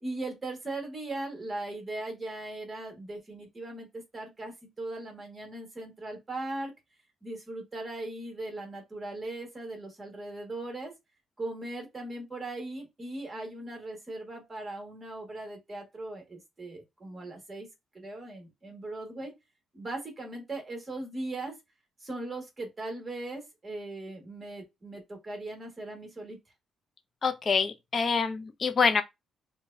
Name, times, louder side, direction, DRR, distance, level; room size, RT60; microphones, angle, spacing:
voice 1, 0.0-6.7 7.2-10.9 11.4-17.7 17.9-19.3 19.7-21.5 22.0-26.4, right 2 dB, 25° right, 1.6 m, -39 dB
voice 2, 27.2-29.0, left 5 dB, 40° left, 0.6 m, -26 dB
4.6 x 2.3 x 2.6 m
cardioid pair, 90°, 0 cm